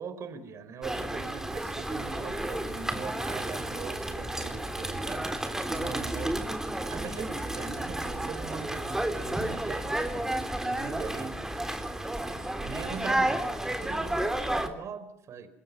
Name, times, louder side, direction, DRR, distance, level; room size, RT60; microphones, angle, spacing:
voice 1, 0.0-5.3 5.6-11.4 12.3-15.5, right 6 dB, 50° right, 11 dB, 4.5 m, -41 dB
sound 1, 0.8-14.7, right 1 dB, 5° right, 3.5 m, -32 dB
27.5 x 21.0 x 7.6 m, 0.77 s
supercardioid pair, 80°, 6 cm